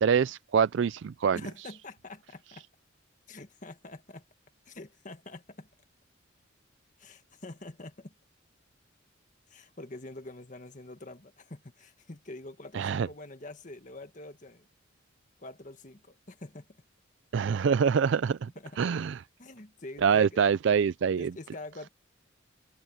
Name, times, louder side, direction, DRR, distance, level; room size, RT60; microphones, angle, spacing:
voice 1, 0.0-1.4 12.7-13.1 17.3-18.5 18.8-19.2 20.0-21.3, right 6 dB, 65° right, 0.4 m, -25 dB
voice 2, 1.3-2.6 3.3-4.2 4.6-5.7 7.0-8.1 9.5-14.7 15.4-16.8 18.5-18.9 19.4-20.4 21.2-21.9, left 2 dB, 40° left, 1.6 m, -45 dB
head